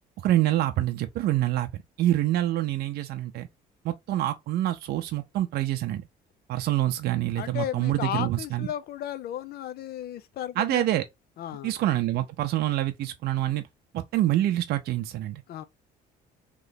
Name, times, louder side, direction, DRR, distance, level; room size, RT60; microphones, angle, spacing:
voice 1, 0.2-1.7 2.0-3.5 3.8-6.0 6.5-8.7 10.6-11.0 11.6-13.6 13.9-15.4, right 14 dB, 70° right, 0.6 m, -26 dB
voice 2, 7.4-10.9 11.4-11.7 15.5-15.6, left 11 dB, 65° left, 0.6 m, -34 dB
3.2 x 3.0 x 3.9 m
cardioid pair, 110°, 17 cm